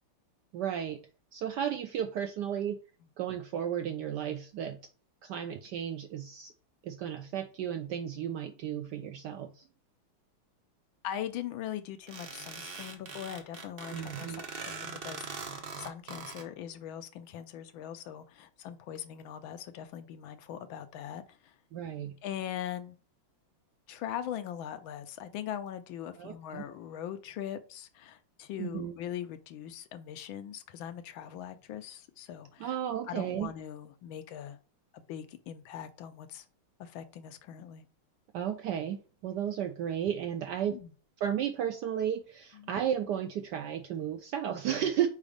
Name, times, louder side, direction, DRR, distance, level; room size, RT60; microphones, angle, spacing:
voice 1, 0.5-1.0 1.3-2.8 3.2-4.8 5.2-6.5 6.8-9.7 13.9-14.4 21.7-22.2 26.2-26.6 28.6-28.9 32.6-33.5 38.3-40.8 41.2-45.1, right 9 dB, 75° right, 1.0 m, -33 dB
voice 2, 11.0-21.5 22.2-23.0 23.9-32.8 33.1-34.6 34.9-36.4 36.8-37.8 40.6-40.9 42.5-42.7, left 10 dB, 75° left, 1.4 m, -41 dB
sound 1, 12.1-16.4, right 4 dB, 60° right, 0.6 m, -42 dB
4.8 x 4.1 x 5.0 m
omnidirectional pair, 2.3 m